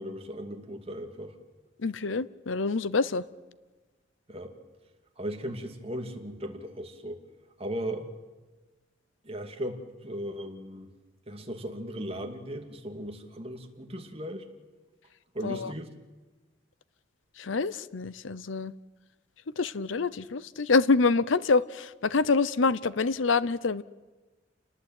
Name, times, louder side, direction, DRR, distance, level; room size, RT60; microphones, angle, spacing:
voice 1, 0.0-1.3 4.3-4.5 5.2-7.2 7.6-8.1 9.2-10.9 11.3-14.5 15.3-15.9, equal, 30° right, 4 dB, 2.5 m, -37 dB
voice 2, 1.8-3.3 15.4-15.7 17.4-18.7 19.6-23.8, left 4 dB, 80° left, 18 dB, 0.7 m, -26 dB
29.0 x 19.5 x 9.0 m, 1.2 s
head